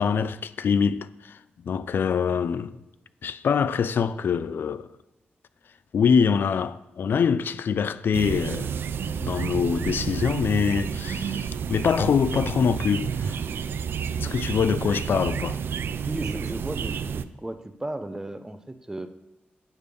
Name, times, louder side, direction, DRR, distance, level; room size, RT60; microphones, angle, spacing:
voice 1, 0.0-1.4 1.6-2.8 3.2-4.9 5.9-8.7 9.2-13.4 14.1-15.6, left 6 dB, 65° left, 0.3 m, -24 dB
sound 1, 8.1-17.2, right 7 dB, 75° right, 0.3 m, -30 dB
voice 2, 16.1-19.1, right 1 dB, 15° right, 0.5 m, -34 dB
9.2 x 3.4 x 6.7 m
wide cardioid pair, 100°, 4 cm